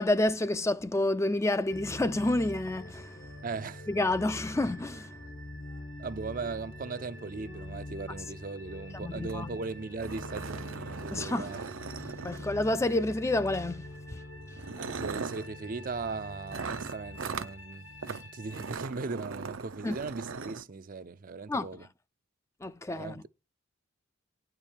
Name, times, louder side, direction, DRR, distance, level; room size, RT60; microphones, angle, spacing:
voice 1, 0.0-3.2 3.9-5.1 9.0-9.6 11.1-11.5 12.2-13.8 14.1-14.2 18.1-18.2 19.8-20.0 21.5-21.7 22.6-23.2, left 2 dB, 15° left, 0.4 m, -29 dB
sound 1, 1.7-18.7, left 1 dB, 70° left, 1.3 m, -44 dB
voice 2, 3.4-3.9 6.0-11.6 14.8-21.9 23.0-23.2, right 4 dB, 45° right, 0.5 m, -38 dB
sound 2, 9.3-9.4 9.6-9.7 10.0-12.8 13.8-14.0 14.5-15.5 16.5-17.5 18.0-18.2 18.5-20.6, right 5 dB, 80° right, 0.7 m, -39 dB
9.6 x 4.6 x 7.2 m
head